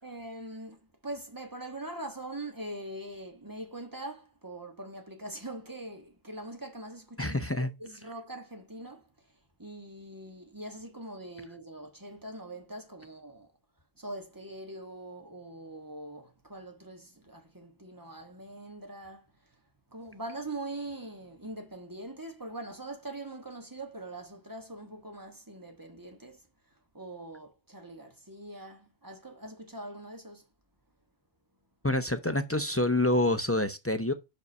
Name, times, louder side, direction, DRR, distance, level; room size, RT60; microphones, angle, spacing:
voice 1, 0.0-9.1 9.6-13.5 14.0-19.3 19.9-26.4 26.9-30.4, right 1 dB, 20° right, 1.5 m, -42 dB
voice 2, 7.2-7.7 31.8-34.1, left 1 dB, 20° left, 0.4 m, -27 dB
5.4 x 5.2 x 5.3 m
omnidirectional pair, 1.1 m